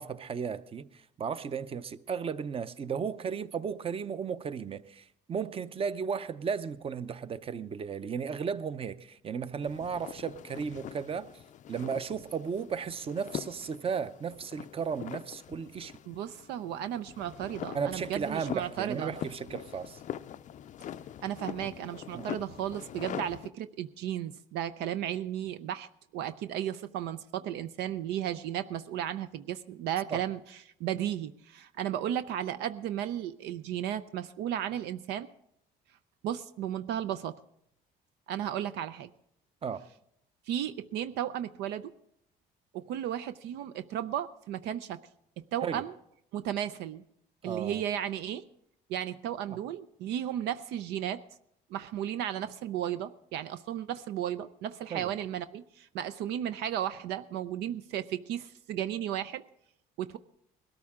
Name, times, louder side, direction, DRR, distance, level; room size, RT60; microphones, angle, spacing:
voice 1, 0.0-11.4 11.7-15.9 17.7-20.0 22.1-22.3 30.1-30.3 39.6-39.9 45.6-45.8 47.4-47.8 49.5-49.6 54.9-55.1, right 6 dB, 35° right, 0.7 m, -35 dB
sound 1, 9.6-23.5, left 10 dB, 50° left, 0.4 m, -43 dB
voice 2, 16.1-19.1 21.2-30.4 30.8-35.3 36.2-37.3 38.3-39.1 40.5-41.9 42.7-45.0 45.5-45.9 46.3-47.0 47.4-48.4 48.9-51.2 51.7-59.4 60.0-60.2, right 10 dB, 85° right, 0.5 m, -34 dB
20.5 x 13.0 x 3.7 m
cardioid pair, 110°, 17 cm